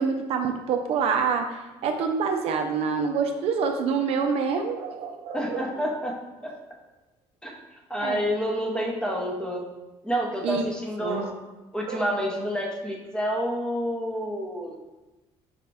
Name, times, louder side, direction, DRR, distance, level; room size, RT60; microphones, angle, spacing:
voice 1, 0.0-1.6 1.8-5.7 8.0-8.3 9.1-9.2 10.4-10.7 11.0-11.3 11.9-12.1, right 5 dB, 60° right, 4 dB, 0.4 m, -26 dB
voice 2, 5.3-6.1 6.4-6.5 7.4-7.6 7.9-9.6 10.0-11.3 11.7-14.8, equal, 5° left, -1 dB, 0.7 m, -28 dB
5.0 x 2.2 x 3.3 m, 1.1 s
cardioid pair, 110°, 11 cm